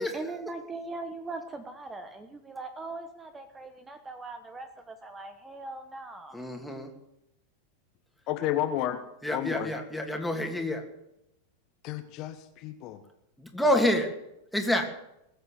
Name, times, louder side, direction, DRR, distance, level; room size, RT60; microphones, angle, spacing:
voice 1, 0.0-6.4, right 3 dB, 15° right, 9 dB, 1.1 m, -40 dB
voice 2, 6.3-6.9 9.2-10.8 13.4-14.1 14.5-14.9, left 1 dB, 5° left, 2 dB, 2.7 m, -27 dB
voice 3, 8.3-9.0 9.3-9.7 11.8-13.0, left 12 dB, 40° left, 8 dB, 1.2 m, -31 dB
20.5 x 8.1 x 8.0 m, 0.83 s
figure-of-eight pair, 90°, 0 cm